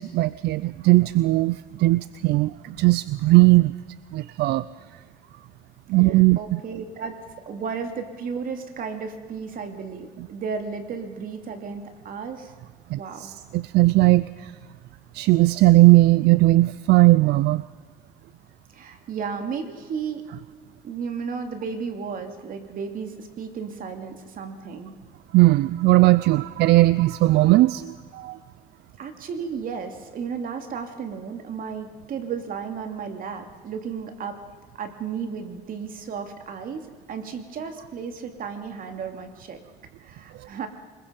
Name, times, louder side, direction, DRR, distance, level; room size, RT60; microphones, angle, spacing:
voice 1, 0.0-3.7 4.1-4.7 5.9-6.6 12.9-14.5 15.1-17.6 25.3-28.4 40.4-40.5, right 19 dB, 80° right, 17 dB, 0.5 m, -18 dB
voice 2, 6.1-7.1 7.5-12.5 13.0-13.3 18.7-20.3 20.8-24.9 29.0-34.4 34.7-39.6 40.0-40.7, right 6 dB, 55° right, 6 dB, 2.7 m, -34 dB
25.0 x 21.5 x 5.3 m, 1.5 s
cardioid pair, 110°, 17 cm